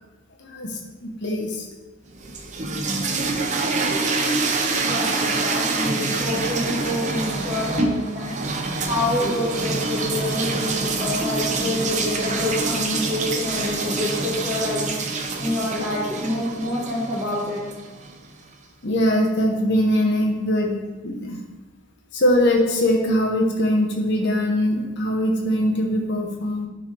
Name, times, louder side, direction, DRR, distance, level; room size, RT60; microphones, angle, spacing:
voice 1, 0.4-1.7 18.8-20.7 21.0-21.4 22.1-26.7, equal, 55° left, 0 dB, 0.9 m, -22 dB
sound 1, 2.1-18.2, right 3 dB, 35° right, 0.6 m, -26 dB
voice 2, 4.8-8.3 8.9-14.9 15.4-17.6, left 1 dB, 15° right, -8 dB, 1.3 m, -27 dB
10.5 x 3.8 x 3.3 m, 1.2 s
head